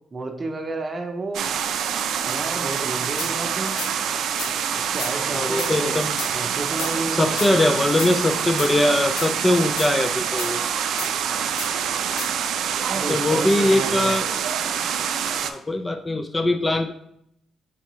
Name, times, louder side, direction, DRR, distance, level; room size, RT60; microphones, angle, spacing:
voice 1, 0.1-1.5 2.3-3.7 4.7-6.0 6.3-7.4 12.9-14.1, right 2 dB, 35° right, 5 dB, 0.7 m, -31 dB
sound 1, 1.3-15.5, right 8 dB, 75° right, 0.3 m, -26 dB
sound 2, 3.2-3.3 3.8-3.9 4.4-4.5 5.0-5.1 5.6-5.7 6.2-6.3 6.8-6.9 7.4-7.5 8.0-8.1 8.6-8.7 9.2-9.3 9.8-9.9 10.4-10.5 11.0-11.1 11.6-11.7 12.2-12.3, left 7 dB, 90° left, 0.5 m, -32 dB
voice 2, 5.3-6.1 7.2-10.6 13.1-14.3 15.4-16.9, left 1 dB, 20° left, 7 dB, 0.3 m, -21 dB
4.3 x 3.8 x 3.1 m, 0.74 s
cardioid pair, 90°, 0 cm